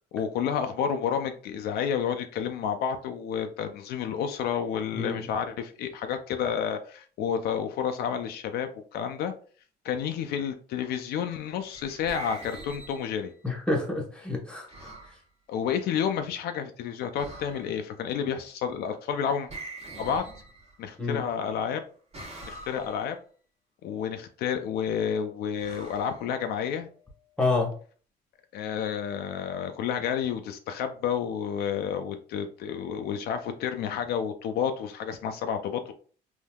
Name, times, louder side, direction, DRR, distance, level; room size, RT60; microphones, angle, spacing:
voice 1, 0.1-9.3 9.8-13.3 15.5-19.5 20.0-20.3 20.8-21.8 22.4-23.2 23.8-26.9 28.5-35.9, left 8 dB, 70° left, 0.4 m, -30 dB
voice 2, 4.9-5.2 13.4-14.7 21.0-21.2 27.4-27.7, left 3 dB, 5° left, 1.0 m, -28 dB
sound 1, 11.4-13.4 14.7-15.2 17.1-17.9 19.5-21.0 22.1-23.1 25.6-26.8, right 2 dB, 40° right, 1.2 m, -44 dB
3.5 x 2.6 x 2.2 m
cardioid pair, 110°, 17 cm